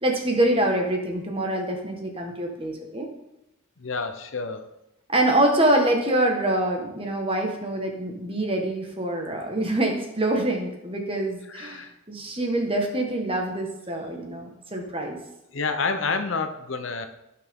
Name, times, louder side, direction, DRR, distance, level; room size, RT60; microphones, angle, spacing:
voice 1, 0.0-3.1 5.1-15.2, right 1 dB, 25° right, 2 dB, 1.4 m, -25 dB
voice 2, 3.8-4.7 11.5-11.9 15.5-17.1, left 4 dB, 70° left, 9 dB, 0.8 m, -28 dB
15.5 x 5.8 x 3.7 m, 0.88 s
head